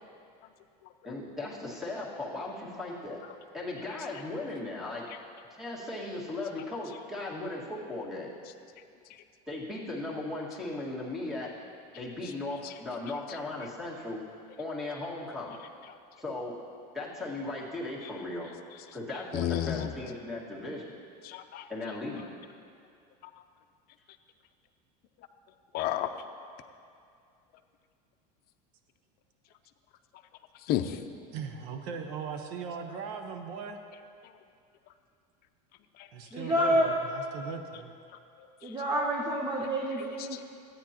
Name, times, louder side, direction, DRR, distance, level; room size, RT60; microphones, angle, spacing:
voice 1, 1.0-3.2 3.5-5.1 5.5-8.3 9.5-11.5 11.9-14.2 14.6-15.6 16.2-16.5 16.9-18.5 18.9-20.9 21.7-22.3, left 2 dB, ahead, -5 dB, 1.9 m, -37 dB
voice 2, 19.3-19.9 21.2-21.6 25.7-26.1 30.7-31.0 36.0-36.1 40.3-40.4, left 12 dB, 50° left, 7 dB, 0.6 m, -30 dB
voice 3, 31.3-33.8 36.1-37.9, right 6 dB, 65° right, 6 dB, 1.0 m, -39 dB
voice 4, 36.3-36.9 38.6-40.4, equal, 20° right, -1 dB, 0.9 m, -28 dB
14.0 x 9.2 x 3.0 m, 2.4 s
supercardioid pair, 115°, 21 cm